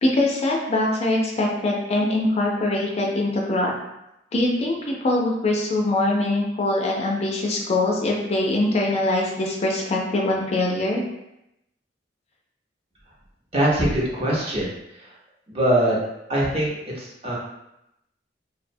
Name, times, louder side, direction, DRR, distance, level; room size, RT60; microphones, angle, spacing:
voice 1, 0.0-3.7 4.3-11.0, left 2 dB, 35° left, -1 dB, 0.4 m, -23 dB
voice 2, 13.5-14.7 15.5-16.0 16.3-17.4, right 1 dB, 35° right, -5 dB, 0.6 m, -22 dB
2.6 x 2.0 x 2.6 m, 0.86 s
head